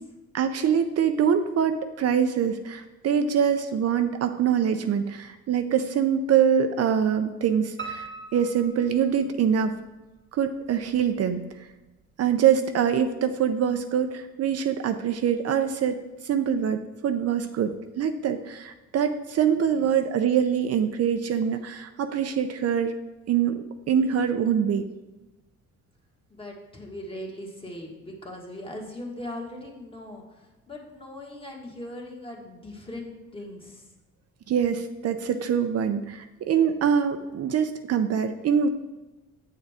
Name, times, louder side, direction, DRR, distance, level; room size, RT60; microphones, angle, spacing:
voice 1, 0.3-9.7 10.3-11.4 12.2-16.0 16.2-22.9 23.3-24.8 34.5-38.7, right 8 dB, 55° right, 8 dB, 0.5 m, -24 dB
Piano, 7.8-9.7 10.1-11.0 11.3-11.4 11.9-12.0 12.2-12.3, right 5 dB, 40° right, 1.1 m, -40 dB
voice 2, 26.3-33.9, left 1 dB, 20° left, -1 dB, 1.6 m, -39 dB
7.7 x 6.5 x 3.5 m, 1.1 s
cardioid pair, 90°, 30 cm